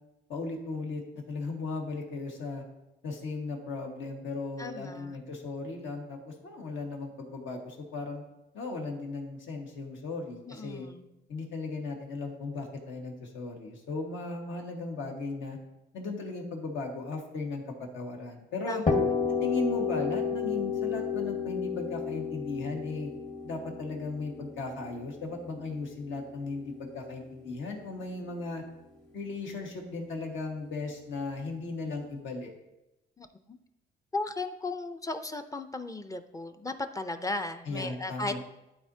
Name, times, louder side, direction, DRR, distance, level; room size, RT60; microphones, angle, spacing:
voice 1, 0.3-1.0 1.3-2.6 3.0-8.2 8.5-10.9 11.3-15.6 15.9-18.8 19.3-23.1 23.4-28.6 29.1-32.5 37.6-38.4, left 3 dB, 75° left, 1 dB, 1.6 m, -36 dB
voice 2, 4.6-5.2 10.5-11.1 18.7-19.0 33.2-33.6 34.1-38.4, left 2 dB, 15° left, 8 dB, 0.5 m, -36 dB
sound 1, 18.9-26.6, left 5 dB, 40° left, 1.4 m, -31 dB
11.5 x 4.3 x 2.8 m, 0.94 s
cardioid pair, 90°, 20 cm